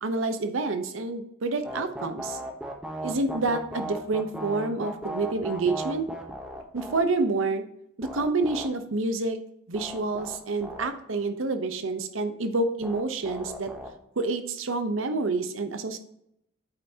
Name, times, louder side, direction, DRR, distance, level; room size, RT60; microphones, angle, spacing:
voice 1, 0.0-2.4 3.0-6.1 6.7-7.6 8.0-9.4 9.7-13.7 14.2-16.0, right 3 dB, 90° right, 9 dB, 0.8 m, -28 dB
sound 1, 1.6-7.1 8.0-8.7 9.7-10.9 12.8-13.9, right 1 dB, 5° right, 0.8 m, -36 dB
8.0 x 5.5 x 2.8 m, 0.78 s
head